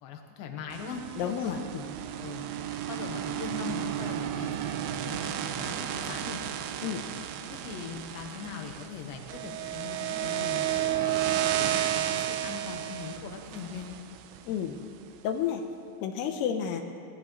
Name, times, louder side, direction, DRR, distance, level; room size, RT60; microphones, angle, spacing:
voice 1, 0.0-1.5 2.2-2.5 2.9-6.4 7.5-13.9, left 6 dB, 70° left, 3 dB, 2.8 m, -41 dB
sound 1, 0.7-14.9, right 11 dB, 85° right, 2.5 m, -32 dB
voice 2, 1.2-1.8 6.8-7.0 14.5-14.8 15.2-15.6 16.0-16.8, left 8 dB, 90° left, 5 dB, 2.9 m, -31 dB
20.5 x 18.0 x 3.2 m, 2.5 s
omnidirectional pair, 4.6 m